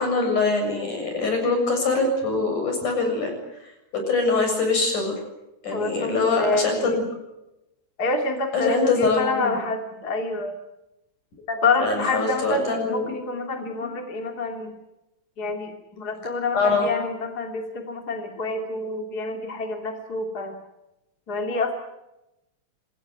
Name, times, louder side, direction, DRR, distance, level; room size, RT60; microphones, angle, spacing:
voice 1, 0.0-3.3 3.6-5.1 5.6-7.0 8.5-9.6 11.5-13.1 16.5-16.9, left 3 dB, 60° left, 4 dB, 8.7 m, -23 dB
voice 2, 5.7-7.0 8.0-10.5 11.6-14.7 15.4-20.6 21.3-21.8, left 3 dB, 30° left, 4 dB, 2.7 m, -27 dB
27.0 x 20.0 x 9.5 m, 0.93 s
omnidirectional pair, 4.0 m